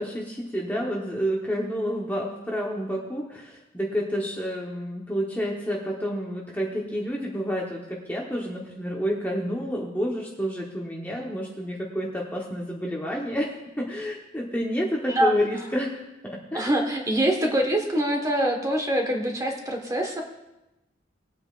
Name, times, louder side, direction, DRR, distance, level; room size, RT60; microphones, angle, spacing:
voice 1, 0.0-16.8, equal, 10° left, -3 dB, 1.1 m, -29 dB
voice 2, 16.5-20.2, right 1 dB, 20° right, 2 dB, 1.3 m, -24 dB
20.5 x 8.7 x 2.5 m, 0.97 s
head